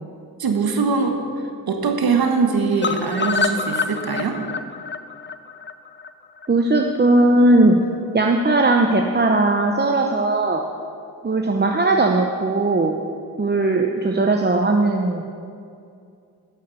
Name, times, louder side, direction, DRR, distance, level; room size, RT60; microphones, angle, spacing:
voice 1, 0.4-1.2 1.7-4.4, right 5 dB, 65° right, 4 dB, 1.6 m, -21 dB
sound 1, 2.8-6.8 7.2-7.3 7.6-7.7 7.9-8.0, left 4 dB, 30° left, 0.7 m, -27 dB
voice 2, 6.5-7.8 8.1-10.6 11.2-13.0 13.4-15.2, right 2 dB, 25° right, 2 dB, 0.9 m, -18 dB
11.0 x 6.6 x 8.2 m, 2.4 s
cardioid pair, 55°, 39 cm